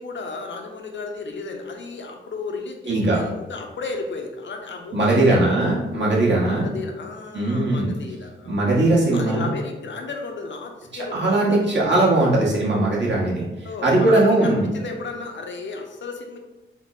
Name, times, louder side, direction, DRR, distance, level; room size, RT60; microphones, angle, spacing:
voice 1, 0.0-5.5 6.5-8.6 9.1-11.7 13.6-16.4, left 3 dB, 65° left, 3 dB, 0.6 m, -34 dB
voice 2, 2.9-3.2 4.9-6.7 7.3-7.9 8.4-9.5 10.9-13.4 13.8-14.7, right 2 dB, 60° right, -5 dB, 1.3 m, -19 dB
3.6 x 2.0 x 3.8 m, 1.1 s
cardioid pair, 50°, 21 cm